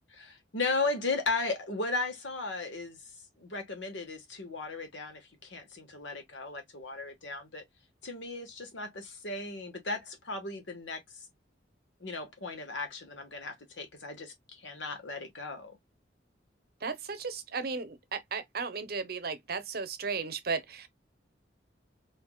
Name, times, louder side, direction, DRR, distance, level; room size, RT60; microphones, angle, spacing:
voice 1, 0.1-3.0 3.4-7.6 8.0-11.0 12.0-15.8, left 3 dB, 85° left, 1.3 m, -36 dB
voice 2, 16.8-20.9, right 5 dB, 55° right, 0.7 m, -35 dB
4.5 x 2.7 x 2.2 m
head